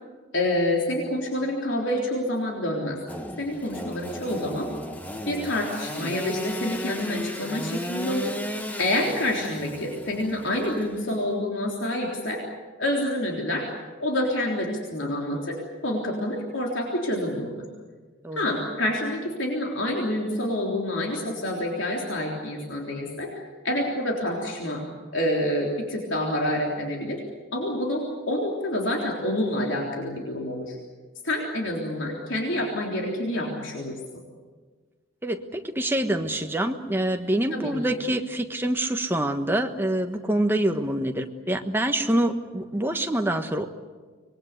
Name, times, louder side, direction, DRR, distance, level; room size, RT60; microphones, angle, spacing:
voice 1, 0.3-3.0 3.4-4.7 5.3-12.4 12.8-13.7 14.0-17.6 18.3-23.3 23.6-24.8 25.1-27.2 27.5-30.8 31.2-34.0 37.5-38.0, left 1 dB, 65° left, -1 dB, 3.6 m, -27 dB
Engine / Sawing, 3.1-11.3, equal, 10° left, 1.3 m, -35 dB
voice 2, 35.2-43.7, right 1 dB, 10° right, 5 dB, 1.3 m, -26 dB
25.5 x 21.0 x 8.2 m, 1.4 s
head